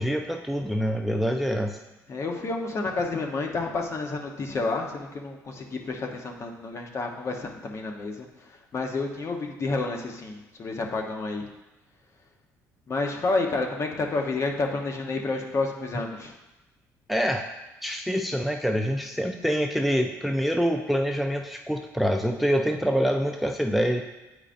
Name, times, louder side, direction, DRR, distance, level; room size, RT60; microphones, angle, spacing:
voice 1, 0.0-1.8 17.1-17.5 17.8-24.0, equal, ahead, 4 dB, 0.4 m, -25 dB
voice 2, 2.1-11.5 12.9-16.3, left 3 dB, 45° left, 2 dB, 0.9 m, -30 dB
8.8 x 4.8 x 2.6 m, 1.0 s
cardioid pair, 85°, 7 cm